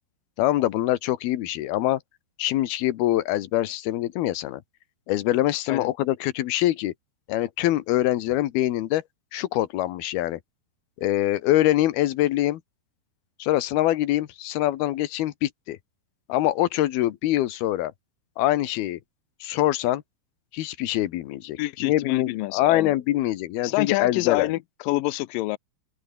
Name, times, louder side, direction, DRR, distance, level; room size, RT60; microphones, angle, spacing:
voice 1, 0.4-2.0 2.4-4.6 5.1-6.9 7.3-9.0 9.3-10.4 11.0-12.6 13.4-15.8 16.3-17.9 18.4-19.0 19.4-20.0 20.5-24.5, left 14 dB, 70° left, 2.9 m, -24 dB
voice 2, 21.6-22.9 23.6-25.6, left 19 dB, 85° left, 1.9 m, -27 dB
open air
omnidirectional pair, 5.0 m